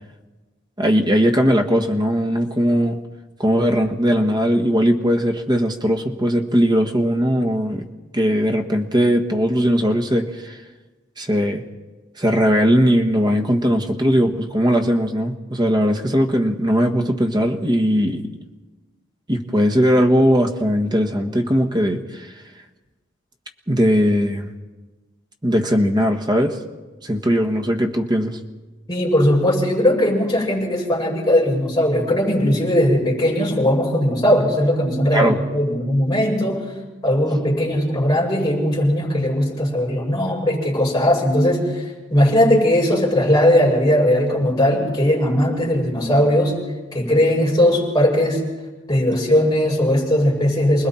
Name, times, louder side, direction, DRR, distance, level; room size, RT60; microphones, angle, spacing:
voice 1, 0.8-3.0 3.4-7.9 8.1-10.6 11.2-11.6 12.2-18.3 19.3-22.3 23.7-24.5 25.4-26.6 27.0-28.4 35.1-35.4, equal, 20° right, 4 dB, 1.5 m, -19 dB
voice 2, 28.9-36.6 37.0-41.8 42.1-46.6 46.9-48.4 48.9-50.9, left 1 dB, 20° left, -3 dB, 6.4 m, -18 dB
29.0 x 20.5 x 4.4 m, 1.2 s
head